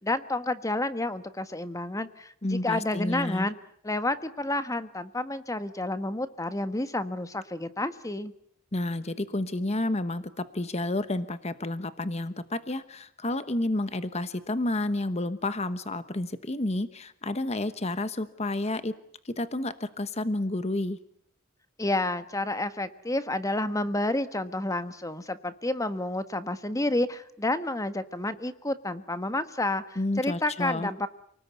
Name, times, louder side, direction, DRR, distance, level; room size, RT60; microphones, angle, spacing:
voice 1, 0.0-3.5 3.8-8.3 21.8-31.1, left 2 dB, 15° left, 11 dB, 1.4 m, -30 dB
voice 2, 2.4-3.5 8.7-18.9 19.2-21.0 30.0-30.9, left 2 dB, 30° left, 12 dB, 1.1 m, -30 dB
29.0 x 19.5 x 9.6 m, 0.67 s
head